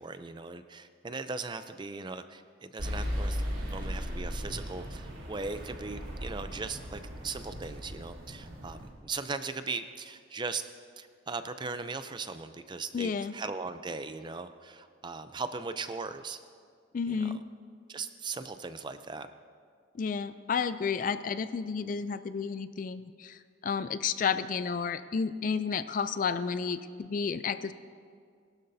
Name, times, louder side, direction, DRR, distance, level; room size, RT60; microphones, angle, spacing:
voice 1, 0.0-10.6 11.0-16.4 17.1-17.4 17.9-19.3, right 4 dB, 20° right, 10 dB, 0.4 m, -39 dB
sound 1, 2.8-8.9, equal, 85° right, 3.0 m, -37 dB
voice 2, 12.9-13.3 16.9-17.4 20.0-27.7, left 6 dB, 40° left, 13 dB, 0.3 m, -31 dB
21.5 x 12.0 x 2.7 m, 2.2 s
head